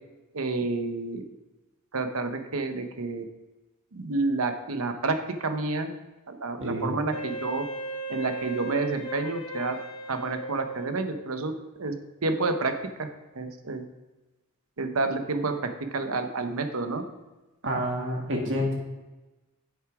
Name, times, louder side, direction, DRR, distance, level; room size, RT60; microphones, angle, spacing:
voice 1, 0.3-1.2 1.9-3.2 3.9-5.9 6.3-7.6 8.1-9.8 10.1-11.5 11.8-11.9 12.2-12.7 13.0-13.1 13.4-13.8 14.8-17.0, right 3 dB, 75° right, 7 dB, 0.9 m, -29 dB
voice 2, 6.6-7.0 17.6-18.8, equal, 55° right, 0 dB, 1.8 m, -28 dB
Wind instrument woodwind instrument, 7.1-11.4, right 2 dB, 65° left, 1.2 m, -37 dB
7.9 x 6.9 x 4.9 m, 1.1 s
head